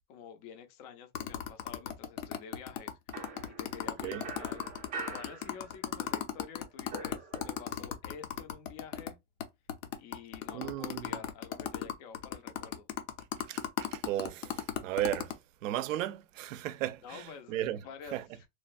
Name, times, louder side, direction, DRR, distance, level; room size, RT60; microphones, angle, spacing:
voice 1, 0.1-4.6 5.1-9.2 10.0-12.9 17.0-18.5, left 7 dB, 35° left, 0.4 m, -49 dB
sound 1, 1.1-9.1 9.4-9.5 9.7-15.3, left 10 dB, 80° left, 0.7 m, -36 dB
sound 2, 3.1-6.1 6.4-7.9, right 4 dB, 20° right, 0.5 m, -44 dB
voice 2, 10.5-11.2 13.5-15.3 15.6-17.8 18.1-18.2, right 13 dB, 85° right, 0.5 m, -35 dB
3.1 x 2.2 x 2.5 m
supercardioid pair, 160°, 38 cm